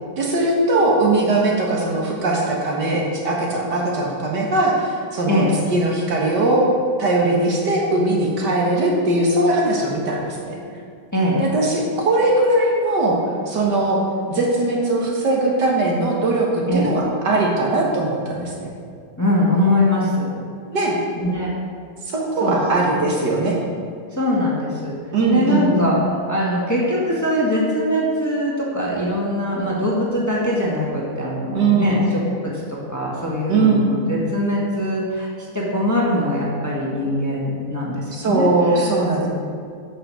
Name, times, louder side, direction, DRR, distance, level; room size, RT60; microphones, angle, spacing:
voice 1, 0.2-5.4 5.7-6.7 7.0-10.6 11.4-13.2 13.5-14.0 14.3-18.7 20.7-21.0 22.1-23.6 25.1-25.9 31.5-32.1 33.5-33.9 38.1-39.3, right 2 dB, 65° right, -2 dB, 2.1 m, -20 dB
voice 2, 11.1-11.4 16.7-16.9 19.2-20.3 21.2-21.5 22.4-22.9 24.1-24.9 25.3-26.0 26.3-39.3, left 1 dB, 10° left, -5 dB, 1.6 m, -22 dB
8.8 x 6.7 x 6.2 m, 2.2 s
omnidirectional pair, 2.0 m